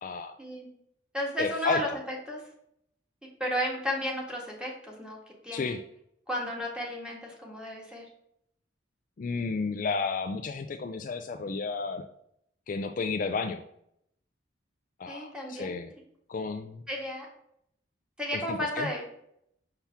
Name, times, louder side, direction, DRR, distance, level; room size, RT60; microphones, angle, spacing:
voice 1, 0.0-0.4 1.4-1.8 5.5-5.8 9.2-12.1 12.7-13.6 15.0-15.9 16.3-16.8 18.3-18.9, left 4 dB, 45° left, 7 dB, 0.4 m, -32 dB
voice 2, 1.1-2.4 3.4-5.2 5.4-5.7 6.3-8.0 15.1-15.8 16.9-17.3 18.2-19.0, equal, 5° right, -2 dB, 1.5 m, -33 dB
5.8 x 5.7 x 3.5 m, 0.72 s
head